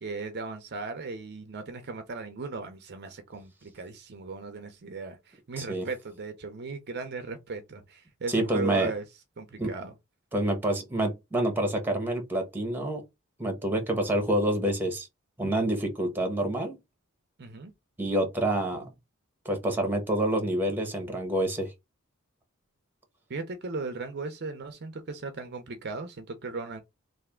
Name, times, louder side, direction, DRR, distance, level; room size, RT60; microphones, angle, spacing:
voice 1, 0.0-9.0 9.4-9.9 17.4-17.7 23.3-26.8, right 3 dB, 50° right, 0.6 m, -37 dB
voice 2, 8.3-8.9 9.6-9.7 10.3-13.0 13.4-15.1 15.4-16.8 18.0-18.9 19.4-21.7, right 1 dB, 10° right, 1.1 m, -27 dB
3.3 x 2.6 x 3.7 m
head